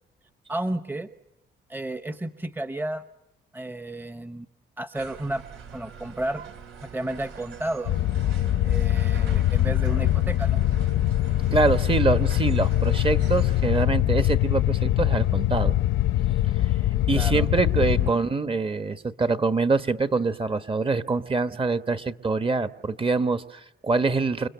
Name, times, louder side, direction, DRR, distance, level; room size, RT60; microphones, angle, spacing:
voice 1, 0.5-1.1 1.7-3.0 3.5-4.5 4.8-5.4 5.7-6.4 6.8-7.9 8.6-10.6 17.1-17.5 17.9-18.2, right 1 dB, 10° right, 10 dB, 1.0 m, -32 dB
sound 1, 5.0-13.9, right 6 dB, 75° right, 3.0 m, -44 dB
sound 2, 7.9-18.1, left 13 dB, 80° left, 0.9 m, -23 dB
voice 2, 11.5-15.7 16.5-16.7 17.1-24.5, right 3 dB, 25° right, 10 dB, 1.3 m, -25 dB
28.5 x 25.5 x 7.0 m, 0.89 s
cardioid pair, 90°, 20 cm